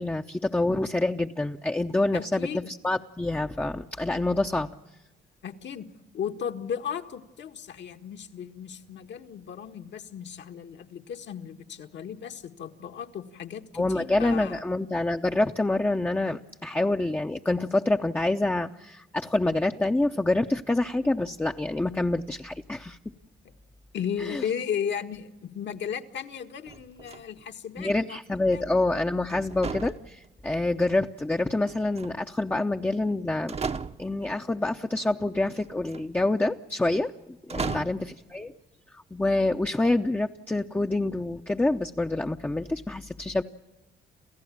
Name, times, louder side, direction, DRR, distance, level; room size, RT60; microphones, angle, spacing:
voice 1, 0.0-4.7 13.7-23.0 24.2-24.4 27.8-33.6 34.0-37.1 37.5-38.5 39.1-43.4, left 2 dB, 10° left, 3 dB, 0.8 m, -27 dB
voice 2, 2.1-2.7 5.4-5.9 6.1-14.6 23.4-23.5 23.9-28.2 28.5-28.6 37.6-37.8, left 8 dB, 65° left, 6 dB, 1.7 m, -35 dB
sound 1, 26.7-27.5 29.3-30.6 31.6-32.4 33.1-33.2 33.5-34.3 35.6-36.0 37.5-38.1, right 5 dB, 30° right, 0.9 m, -36 dB
29.0 x 15.0 x 8.5 m, 1.0 s
cardioid pair, 90°, 20 cm